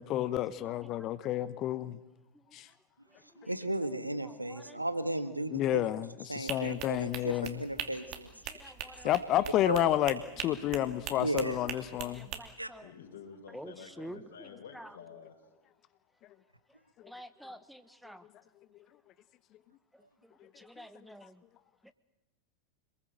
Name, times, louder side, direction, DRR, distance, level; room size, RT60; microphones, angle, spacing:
voice 1, 0.0-2.0 2.5-2.7 5.5-7.6 9.0-12.3, left 13 dB, 35° left, 1.0 m, -30 dB
voice 2, 0.6-1.1 2.3-2.5 3.1-3.5 4.2-4.8 7.3-7.4 8.5-9.1 10.5-11.0 12.0-12.9 13.5-15.0 17.0-18.3 19.9-21.4, equal, ahead, 1.2 m, -50 dB
voice 3, 3.4-5.8 6.3-7.3 7.6-8.3 8.6-8.7 9.6-9.9 11.1-11.6 12.6-12.7, right 1 dB, 85° right, 1.5 m, -35 dB
sound 1, 6.5-12.4, right 10 dB, 40° right, 2.8 m, -41 dB
voice 4, 12.8-15.4, left 6 dB, 60° left, 4.7 m, -50 dB
27.0 x 21.0 x 7.9 m
figure-of-eight pair, 90°, 0 cm